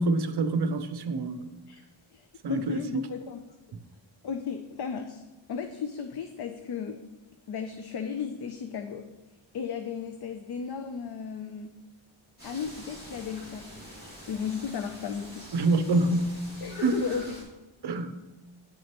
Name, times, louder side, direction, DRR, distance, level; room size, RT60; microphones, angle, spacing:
voice 1, 0.0-1.5 2.4-3.1 3.7-3.8 15.5-16.4 16.8-17.0 17.8-18.1, right 2 dB, 55° right, 11 dB, 0.6 m, -26 dB
voice 2, 2.1-3.4 4.2-5.2 5.5-7.0 7.5-9.0 9.5-11.8 12.4-13.7 14.3-15.5 16.6-17.4, left 6 dB, 55° left, 7 dB, 0.5 m, -35 dB
sound 1, 12.4-17.4, equal, 20° left, 2.4 m, -46 dB
9.5 x 6.3 x 2.9 m, 1.1 s
wide cardioid pair, 155°, 49 cm